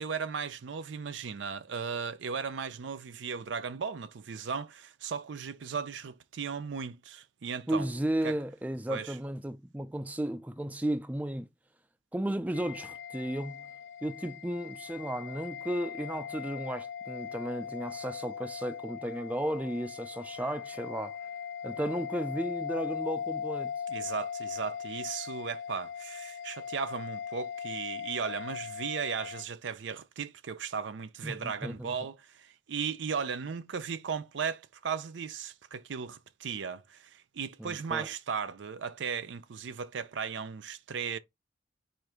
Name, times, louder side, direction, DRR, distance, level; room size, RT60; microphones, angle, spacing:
voice 1, 0.0-7.9 8.2-8.3 8.9-9.1 23.9-41.2, right 6 dB, 75° right, 0.5 m, -36 dB
voice 2, 7.7-11.5 12.1-13.7 14.0-21.2 21.6-23.7 31.2-31.9 37.6-38.1, right 1 dB, 10° right, 0.3 m, -34 dB
sound 1, 12.5-29.4, left 7 dB, 70° left, 0.5 m, -39 dB
4.4 x 2.5 x 4.8 m
head